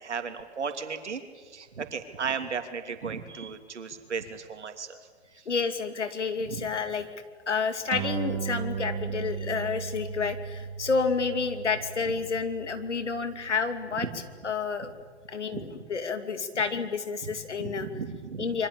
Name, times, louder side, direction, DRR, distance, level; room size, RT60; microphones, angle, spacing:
voice 1, 0.0-5.0 6.5-6.6 14.0-14.1 14.8-14.9 15.5-15.6 17.2-17.3 17.6-18.5, right 6 dB, 80° right, 7 dB, 3.1 m, -35 dB
voice 2, 5.5-7.1 7.5-14.1 14.4-14.9 15.3-17.9 18.4-18.7, left 5 dB, 85° left, 8 dB, 2.6 m, -30 dB
sound 1, 7.9-14.7, right 7 dB, 40° right, 2.3 m, -37 dB
26.5 x 23.5 x 8.5 m, 1.5 s
hypercardioid pair, 110°, 34 cm